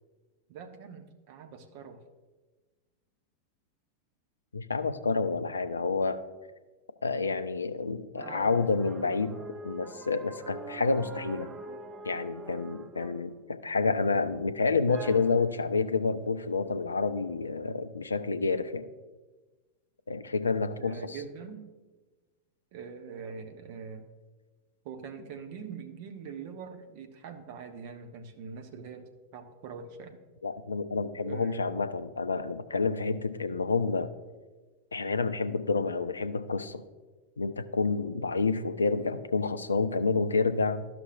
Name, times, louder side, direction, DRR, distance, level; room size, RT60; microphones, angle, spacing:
voice 1, 0.5-2.0 20.8-21.6 22.7-24.1 24.8-30.2 31.2-31.7, right 6 dB, 50° right, 6 dB, 0.8 m, -43 dB
voice 2, 4.5-6.2 7.0-9.4 9.6-11.5 12.0-18.9 20.1-21.0 30.4-34.1 34.9-36.8 37.4-40.9, left 4 dB, 75° left, 12 dB, 0.4 m, -29 dB
sound 1, 8.2-13.4 13.7-14.4 14.9-15.6, right 3 dB, 20° right, 0.5 m, -44 dB
12.5 x 6.0 x 2.5 m, 1.2 s
figure-of-eight pair, 90°, 0 cm